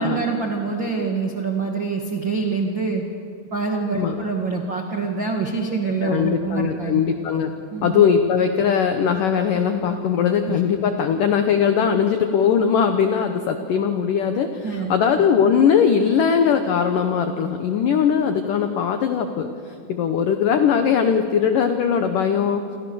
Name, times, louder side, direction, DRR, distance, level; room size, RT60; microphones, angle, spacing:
voice 1, 0.0-3.0 3.5-7.0 7.7-8.0 10.5-10.6 14.6-14.9, right 4 dB, 60° right, 2 dB, 1.2 m, -25 dB
voice 2, 6.0-7.5 7.8-22.6, left 7 dB, 80° left, 7 dB, 1.9 m, -20 dB
28.0 x 28.0 x 7.0 m, 2.5 s
omnidirectional pair, 5.4 m